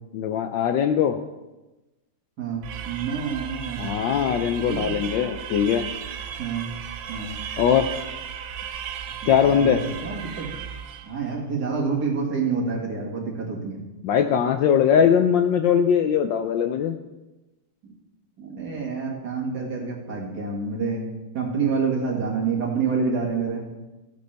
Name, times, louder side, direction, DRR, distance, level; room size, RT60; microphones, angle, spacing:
voice 1, 0.1-1.2 3.8-5.9 7.6-7.9 9.3-9.8 14.0-17.0, left 8 dB, 75° left, 7 dB, 1.1 m, -21 dB
voice 2, 2.4-4.0 4.7-4.9 6.4-6.7 7.1-7.3 9.2-10.5 11.0-13.8 18.4-21.0 21.3-23.7, right 5 dB, 50° right, -1 dB, 2.3 m, -28 dB
sound 1, 2.6-11.2, right 8 dB, 70° right, 1.4 m, -35 dB
15.0 x 8.4 x 3.4 m, 1.1 s
omnidirectional pair, 2.4 m